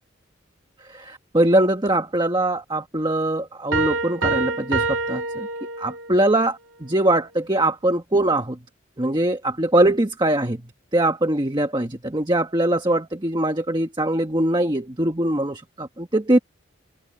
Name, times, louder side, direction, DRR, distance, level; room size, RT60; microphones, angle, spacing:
voice 1, 0.9-5.5 5.8-8.6 9.0-10.7 10.9-16.4, right 1 dB, 25° right, 1.4 m, -22 dB
Piano, 3.7-6.2, right 3 dB, 85° right, 2.3 m, -26 dB
open air
head